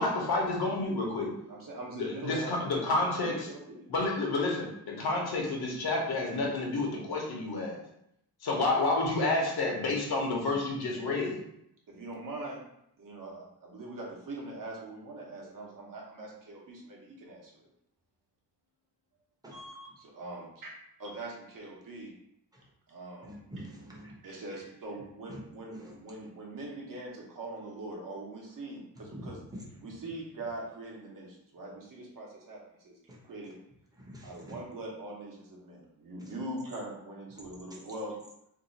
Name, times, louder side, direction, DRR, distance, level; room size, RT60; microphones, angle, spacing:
voice 1, 0.0-1.3 1.9-3.5 3.9-7.8 8.4-11.4, left 2 dB, 65° left, -1 dB, 0.9 m, -30 dB
voice 2, 1.5-3.9 8.4-8.6 11.9-12.6 13.0-17.7 20.0-20.7 21.0-22.1 22.9-23.4 24.2-29.4 29.8-33.0 33.2-33.5 34.2-38.2, right 2 dB, 55° right, -2 dB, 0.9 m, -42 dB
voice 3, 19.4-19.9 23.2-24.1 25.3-25.4 25.7-25.9 29.1-29.3 33.1-33.2 34.0-34.6, equal, 10° right, -4 dB, 0.7 m, -46 dB
2.7 x 2.3 x 4.0 m, 0.77 s
wide cardioid pair, 140°, 40 cm